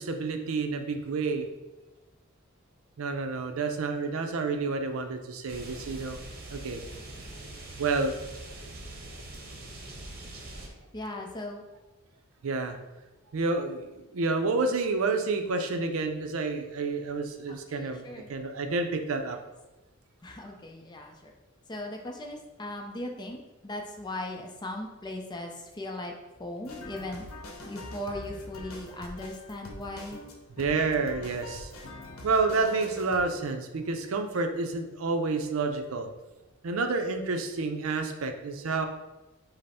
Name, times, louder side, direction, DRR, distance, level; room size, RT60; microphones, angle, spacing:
voice 1, 0.0-1.5 3.0-6.2 6.5-6.8 7.8-8.2 12.4-12.8 13.3-19.4 30.6-31.7 32.2-36.1 36.6-38.9, right 3 dB, 75° right, 6 dB, 0.5 m, -29 dB
sound 1, 5.5-10.7, right 1 dB, 50° right, 0.9 m, -43 dB
voice 2, 10.9-11.6 17.5-18.3 20.2-21.3 21.7-23.4 23.6-26.1 26.4-27.2 27.6-30.2, left 1 dB, 20° left, 2 dB, 0.5 m, -38 dB
sound 2, 26.6-33.2, left 1 dB, 85° left, 0.7 m, -44 dB
5.2 x 2.1 x 4.2 m, 1.1 s
head